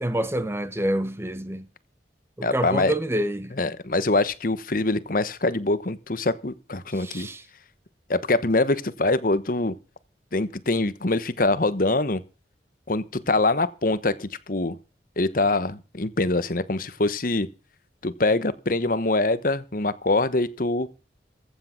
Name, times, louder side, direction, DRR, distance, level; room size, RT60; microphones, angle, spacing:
voice 1, 0.0-1.7 2.4-3.5 6.9-7.4, right 1 dB, 15° right, 1.1 m, -27 dB
voice 2, 2.4-2.9 3.6-7.3 8.1-9.7 10.3-12.2 12.9-14.8 15.2-17.5 18.0-20.9, left 2 dB, 50° left, 1.1 m, -24 dB
15.5 x 8.6 x 5.8 m
head